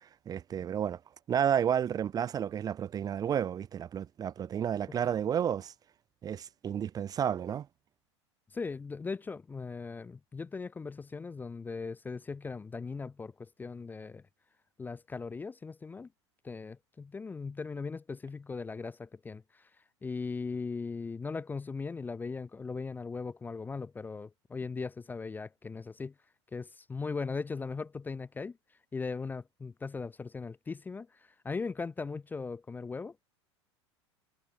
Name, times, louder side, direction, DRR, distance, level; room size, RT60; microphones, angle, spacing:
voice 1, 0.3-1.0 1.3-5.7 6.2-7.7, right 9 dB, 25° right, 0.8 m, -31 dB
voice 2, 8.5-14.2 14.8-16.1 16.4-19.7 20.0-26.1 26.5-28.6 28.9-33.2, left 4 dB, 10° left, 0.5 m, -39 dB
figure-of-eight pair, 80°, 15 cm